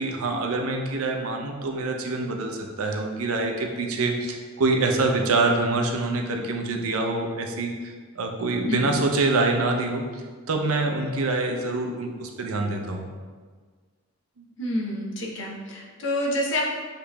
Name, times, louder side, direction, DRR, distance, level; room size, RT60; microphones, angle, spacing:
voice 1, 0.0-13.1 14.4-14.5, right 2 dB, 80° right, 2 dB, 0.5 m, -25 dB
voice 2, 14.6-16.6, left 1 dB, 60° left, -1 dB, 0.7 m, -28 dB
6.7 x 2.9 x 2.3 m, 1.5 s
head